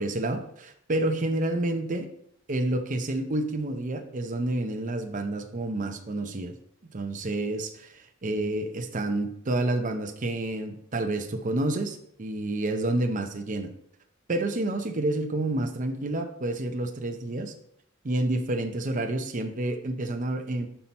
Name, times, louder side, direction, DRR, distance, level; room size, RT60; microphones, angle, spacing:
voice 1, 0.0-2.1 2.5-6.5 6.9-7.7 8.2-13.7 14.3-17.5 18.0-20.7, right 2 dB, 40° right, 5 dB, 0.6 m, -29 dB
5.7 x 5.6 x 4.3 m, 0.69 s
head